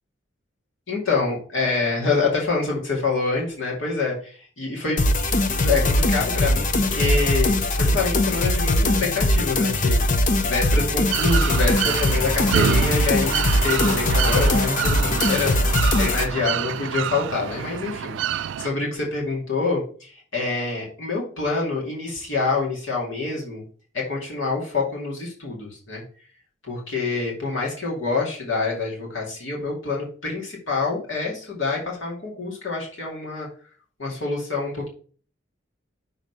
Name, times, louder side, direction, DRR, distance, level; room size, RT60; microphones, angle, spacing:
voice 1, 0.9-23.6 23.9-26.0 26.7-33.5 34.0-34.9, left 4 dB, 80° left, -3 dB, 2.3 m, -26 dB
sound 1, 5.0-16.3, left 1 dB, 40° left, 0.6 m, -21 dB
sound 2, 11.1-18.7, right 9 dB, 70° right, 0.3 m, -27 dB
6.3 x 4.0 x 5.4 m, 0.42 s
head